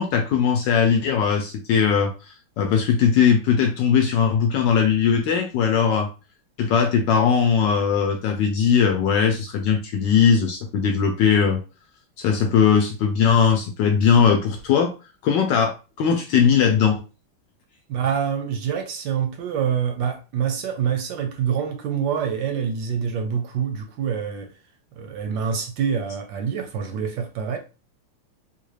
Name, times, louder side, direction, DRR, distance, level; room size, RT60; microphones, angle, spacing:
voice 1, 0.0-6.1 6.6-11.6 12.2-14.9 15.2-17.0, left 7 dB, 75° left, 1.1 m, -19 dB
voice 2, 17.9-24.5 25.0-27.6, right 7 dB, 75° right, 1.1 m, -26 dB
3.8 x 2.3 x 3.2 m
omnidirectional pair, 2.3 m